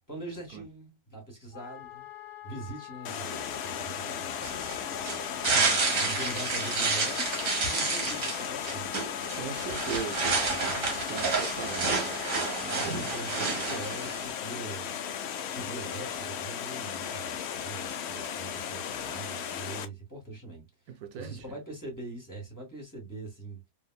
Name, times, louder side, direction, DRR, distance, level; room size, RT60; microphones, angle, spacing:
voice 1, 0.1-2.1 2.4-5.0 6.0-9.4 12.6-14.9 15.5-23.7, right 2 dB, 15° left, 1.6 m, -42 dB
Wind instrument woodwind instrument, 1.5-12.8, left 14 dB, 90° left, 1.1 m, -45 dB
Water, 3.0-19.9, left 8 dB, 70° left, 0.6 m, -36 dB
sound 1, 4.4-14.3, right 4 dB, 60° right, 1.4 m, -30 dB
voice 2, 5.5-6.0 9.4-12.1 12.6-12.9 20.9-21.4, right 7 dB, 80° right, 1.1 m, -39 dB
3.5 x 2.7 x 2.3 m
omnidirectional pair, 1.6 m